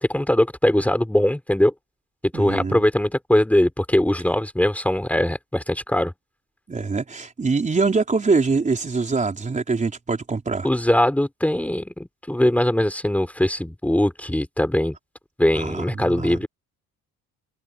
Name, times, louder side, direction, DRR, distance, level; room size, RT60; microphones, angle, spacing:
voice 1, 0.0-1.7 2.3-6.1 10.6-15.0 15.4-16.5, left 1 dB, 5° left, 4.5 m, -21 dB
voice 2, 2.3-2.8 6.7-10.7 15.6-16.4, right 4 dB, 25° right, 4.6 m, -24 dB
open air
cardioid pair, 120°, 32 cm